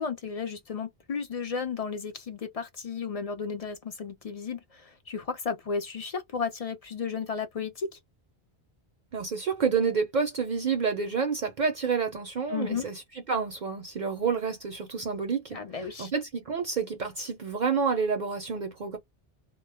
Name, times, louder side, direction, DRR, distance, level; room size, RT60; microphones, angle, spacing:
voice 1, 0.0-8.0 12.5-12.9 15.5-16.1, left 5 dB, 50° left, 0.4 m, -34 dB
voice 2, 9.1-13.0 13.3-15.6 16.0-19.0, right 5 dB, 55° right, 0.6 m, -29 dB
2.2 x 2.1 x 3.2 m
omnidirectional pair, 1.1 m